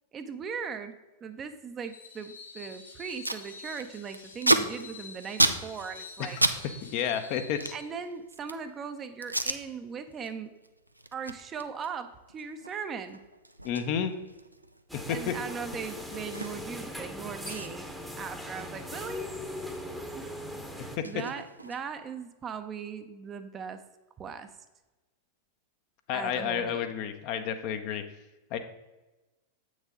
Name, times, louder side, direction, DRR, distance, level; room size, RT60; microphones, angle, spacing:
voice 1, 0.1-0.9 1.2-6.4 7.7-10.5 11.1-13.2 15.1-17.9 18.2-19.2 20.1-20.3 21.0-23.8 24.2-24.5 26.1-26.9, right 6 dB, 25° right, 8 dB, 0.7 m, -39 dB
Screech, 1.8-7.9, left 4 dB, 75° left, 1.1 m, -47 dB
Packing tape duct tape, 2.7-2.8 3.0-3.4 3.7-6.6 6.9-8.7 9.2-9.6 10.1-10.3 10.6-16.9 17.1-17.2 17.4-19.8 20.1-22.1, right 1 dB, 85° right, 0.4 m, -32 dB
voice 2, 6.2-6.5 6.8-7.7 13.6-14.1 14.9-15.3 26.1-28.0 28.5-28.6, left 8 dB, 45° left, 8 dB, 0.7 m, -31 dB
sound 1, 14.9-21.0, left 1 dB, ahead, 0.9 m, -40 dB
8.0 x 6.3 x 3.8 m, 1.1 s
figure-of-eight pair, 90°, 0 cm